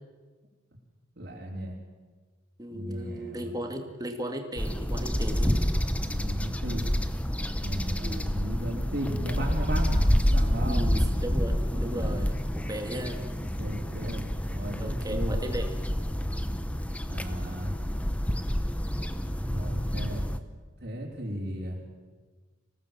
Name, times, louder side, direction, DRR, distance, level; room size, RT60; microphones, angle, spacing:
voice 1, 1.2-1.8 2.7-3.5 6.0-6.9 7.6-10.8 11.9-12.2 13.4-15.3 17.1-17.8 19.5-20.3 20.8-21.8, equal, 55° right, -4 dB, 3.9 m, -35 dB
voice 2, 2.6-5.6 8.0-8.3 10.6-13.3 14.8-15.7, right 1 dB, 20° right, 5 dB, 2.2 m, -36 dB
sound 1, 4.6-20.4, equal, 5° left, 0.9 m, -28 dB
25.5 x 18.0 x 7.4 m, 1.4 s
head